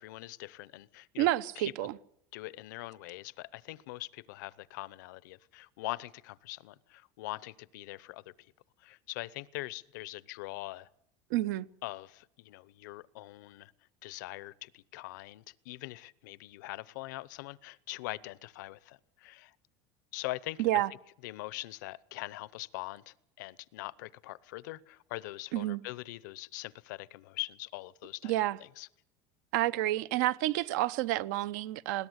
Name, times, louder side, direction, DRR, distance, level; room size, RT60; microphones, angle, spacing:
voice 1, 0.0-1.3 1.6-1.7 2.3-8.2 8.8-10.9 11.8-13.7 14.0-19.5 20.1-20.6 21.2-28.3 28.8-28.9, left 19 dB, 85° left, 0.8 m, -42 dB
voice 2, 1.2-2.0 11.3-11.7 20.6-20.9 25.5-25.8 28.2-28.6 29.5-32.1, right 15 dB, 80° right, 0.8 m, -29 dB
21.0 x 17.5 x 8.0 m
cardioid pair, 145°, 10 cm